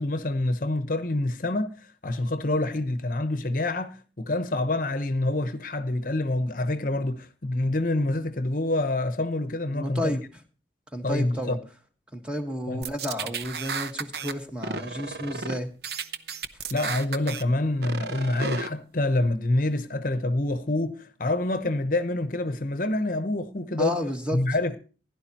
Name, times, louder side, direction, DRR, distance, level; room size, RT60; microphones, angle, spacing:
voice 1, 0.0-1.7 2.0-10.2 11.0-11.6 12.7-12.8 16.7-24.0 24.3-24.8, left 2 dB, 45° left, 0.9 m, -27 dB
voice 2, 9.7-10.2 10.9-11.6 12.1-15.7 23.8-24.4, left 1 dB, 5° right, 1.5 m, -31 dB
sound 1, 12.8-14.3 14.6-15.6 15.8-17.4 17.8-18.7, right 5 dB, 60° right, 0.8 m, -33 dB
16.0 x 11.0 x 2.9 m
head